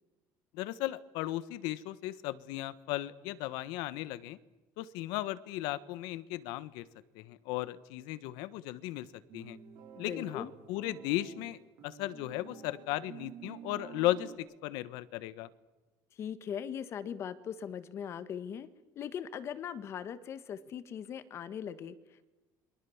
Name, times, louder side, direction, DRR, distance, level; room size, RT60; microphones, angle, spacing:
voice 1, 0.5-4.4 4.8-6.8 7.1-9.1 9.3-9.6 10.0-15.5, left 15 dB, 90° left, 16 dB, 1.3 m, -36 dB
sound 1, 9.3-14.4, right 9 dB, 60° right, 6.6 m, -50 dB
voice 2, 10.0-10.5 16.1-18.7 18.9-22.3, left 8 dB, 40° left, 13 dB, 1.5 m, -40 dB
28.5 x 23.5 x 7.3 m, 1.1 s
cardioid pair, 160°, 7 cm